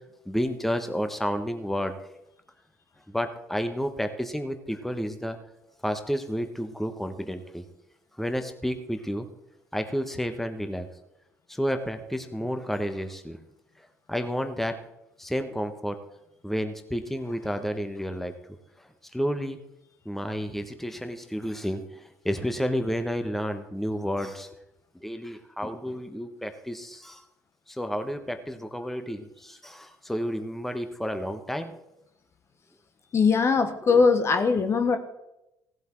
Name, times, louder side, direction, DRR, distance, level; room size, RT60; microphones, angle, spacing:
voice 1, 0.3-2.0 3.1-5.4 5.8-7.6 8.2-9.3 9.7-10.9 11.5-13.4 14.1-14.8 15.2-15.9 16.4-18.3 19.1-19.6 20.0-21.8 22.2-24.5 25.0-27.2 27.8-31.7 33.9-34.0, equal, 5° left, 7 dB, 1.3 m, -30 dB
voice 2, 33.1-35.0, left 5 dB, 40° left, 8 dB, 1.3 m, -21 dB
16.0 x 8.0 x 4.6 m, 0.88 s
hypercardioid pair, 60°, 7 cm